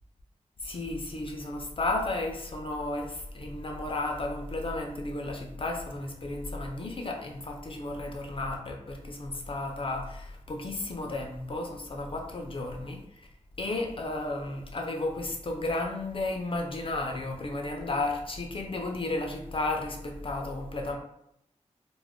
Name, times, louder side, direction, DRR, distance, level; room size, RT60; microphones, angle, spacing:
voice 1, 0.6-13.3 13.6-21.0, left 2 dB, 45° left, 2 dB, 0.4 m, -33 dB
2.3 x 2.0 x 3.4 m, 0.76 s
wide cardioid pair, 80°, 12 cm